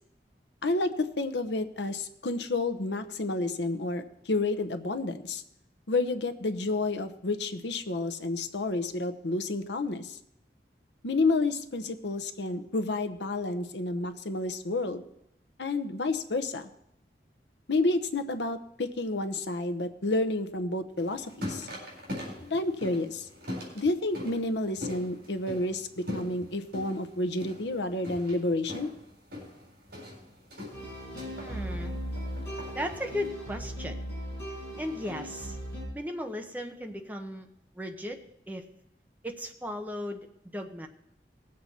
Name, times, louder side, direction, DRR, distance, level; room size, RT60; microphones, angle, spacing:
voice 1, 0.6-5.4 5.9-10.2 11.0-15.0 15.6-16.7 17.7-21.7 22.4-23.3 23.7-28.9, left 2 dB, 85° left, 10 dB, 0.9 m, -30 dB
sound 1, 21.0-33.3, left 1 dB, 65° right, 4.0 m, -41 dB
sound 2, 30.7-35.9, equal, 15° left, 5.7 m, -38 dB
voice 2, 31.4-31.9 32.7-34.1 34.8-35.6 35.9-37.5 37.7-38.6 39.2-40.3 40.5-40.9, left 1 dB, 10° right, 4 dB, 0.9 m, -36 dB
18.5 x 7.6 x 4.2 m, 0.79 s
head